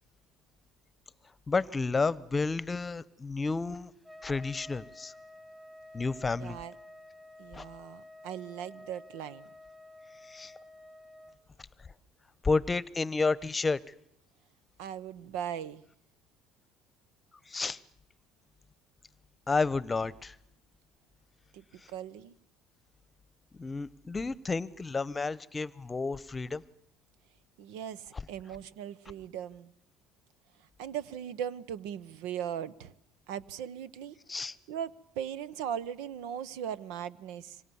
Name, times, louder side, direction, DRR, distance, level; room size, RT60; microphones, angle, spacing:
voice 1, 1.5-3.9 4.2-5.1 5.9-6.6 7.5-7.6 10.2-10.5 12.4-13.8 17.5-17.8 19.5-20.4 21.8-21.9 23.5-26.6 28.1-28.2 34.3-34.6, left 4 dB, 25° left, 1.0 m, -31 dB
Trumpet, 4.0-11.4, left 1 dB, ahead, 1.7 m, -51 dB
voice 2, 6.4-6.7 7.4-9.5 14.8-15.8 21.5-22.3 27.6-29.7 30.8-32.9 33.3-34.2 34.7-37.6, right 9 dB, 80° right, 1.0 m, -39 dB
27.5 x 25.0 x 7.1 m
supercardioid pair, 80°, 0 cm